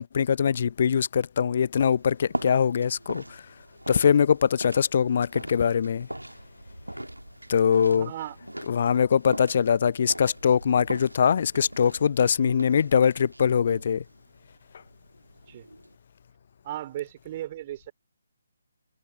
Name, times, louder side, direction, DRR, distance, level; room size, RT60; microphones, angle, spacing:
voice 1, 0.0-3.4 3.9-6.1 7.5-8.1 8.7-14.0, left 7 dB, 40° left, 0.5 m, -22 dB
sound 1, 1.9-16.0, right 1 dB, 85° right, 2.0 m, -41 dB
voice 2, 7.9-8.4 15.5-15.7 16.6-17.9, right 13 dB, 30° right, 2.8 m, -36 dB
figure-of-eight pair, 145°, 0 cm